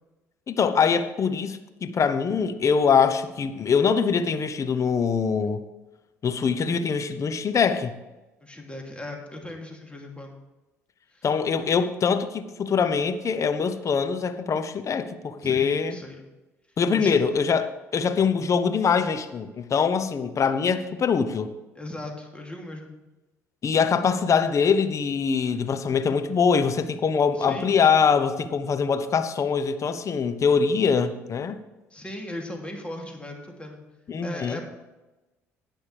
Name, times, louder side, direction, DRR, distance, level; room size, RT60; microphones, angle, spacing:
voice 1, 0.5-5.6 6.2-7.9 11.2-16.0 16.8-21.5 23.6-31.6 34.1-34.6, left 6 dB, 40° left, 10 dB, 0.9 m, -23 dB
voice 2, 8.4-10.3 11.1-11.3 15.4-16.2 16.9-17.2 21.7-22.9 27.3-27.7 31.9-33.8 34.2-34.6, left 1 dB, 15° left, 1 dB, 2.8 m, -37 dB
19.5 x 6.5 x 3.4 m, 1.1 s
hypercardioid pair, 55°, 8 cm